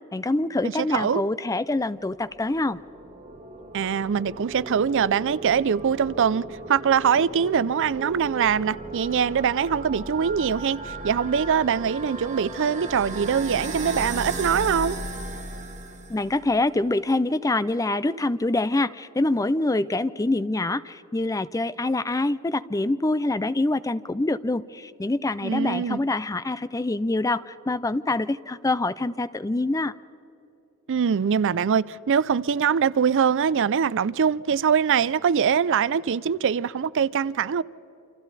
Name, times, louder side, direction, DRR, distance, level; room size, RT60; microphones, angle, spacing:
voice 1, 0.1-2.8 16.1-29.9, left 2 dB, 15° left, 0.5 m, -25 dB
voice 2, 0.6-1.2 3.7-15.0 25.4-26.1 30.9-37.6, right 7 dB, 60° right, 0.4 m, -23 dB
sound 1, 2.3-16.4, right 2 dB, 35° right, 1.9 m, -36 dB
28.5 x 26.0 x 4.1 m
head